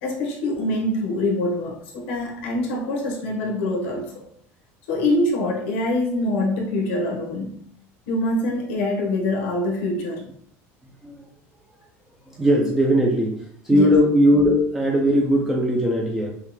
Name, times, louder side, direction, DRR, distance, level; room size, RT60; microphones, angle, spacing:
voice 1, 0.0-4.3 4.9-7.6 8.1-10.3 13.7-14.0, left 1 dB, 90° left, 0 dB, 1.3 m, -24 dB
voice 2, 12.3-16.3, equal, 5° right, -2 dB, 0.5 m, -19 dB
5.5 x 2.4 x 3.2 m, 0.63 s
cardioid pair, 175°, 7 cm